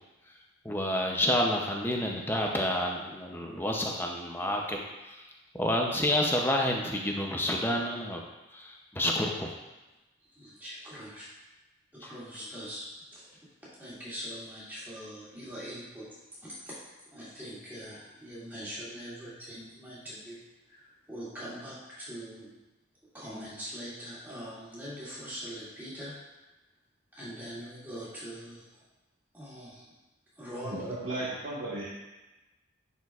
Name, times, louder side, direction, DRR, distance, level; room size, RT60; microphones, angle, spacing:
voice 1, 0.6-5.3 5.5-8.2 8.5-9.5 12.0-12.1, left 1 dB, 10° left, 0 dB, 0.5 m, -29 dB
voice 2, 10.3-11.3 11.9-12.9 13.1-13.3 13.8-16.1 16.4-16.8 17.1-22.5 23.1-26.2 27.1-28.7 29.3-29.9 30.4-30.9, equal, 10° right, -10 dB, 2.1 m, -42 dB
voice 3, 30.6-31.9, right 2 dB, 70° right, -9 dB, 1.4 m, -35 dB
10.5 x 4.5 x 2.4 m, 1.1 s
head